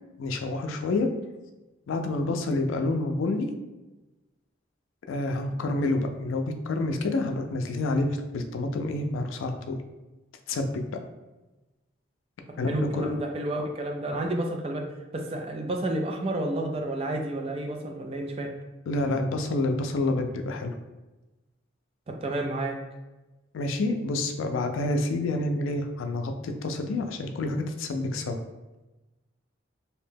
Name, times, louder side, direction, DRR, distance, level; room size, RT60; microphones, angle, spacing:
voice 1, 0.2-1.1 1.9-3.5 5.1-9.8 10.5-10.7 12.6-13.2 18.9-20.7 23.5-28.4, left 2 dB, 85° left, 5 dB, 0.4 m, -28 dB
voice 2, 12.7-14.8 15.1-18.5 22.1-22.8, right 1 dB, 30° right, 2 dB, 0.3 m, -30 dB
2.7 x 2.1 x 3.3 m, 1.1 s
head